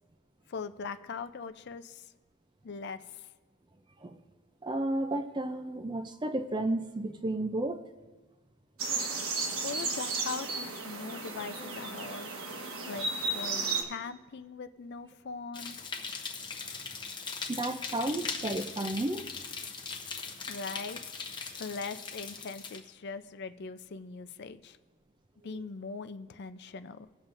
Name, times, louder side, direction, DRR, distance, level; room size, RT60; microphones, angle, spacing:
voice 1, 0.5-2.1 2.6-3.3 9.6-12.3 12.8-15.8 20.5-21.0 21.6-24.8 25.4-27.1, left 4 dB, 50° left, 0.4 m, -41 dB
voice 2, 4.6-7.8 17.5-19.2 25.5-25.6, right 1 dB, 20° right, 0.4 m, -32 dB
sound 1, 8.8-13.8, right 3 dB, 65° right, 1.3 m, -34 dB
sound 2, 15.5-22.8, left 5 dB, 20° left, 0.8 m, -40 dB
21.5 x 7.2 x 2.6 m
head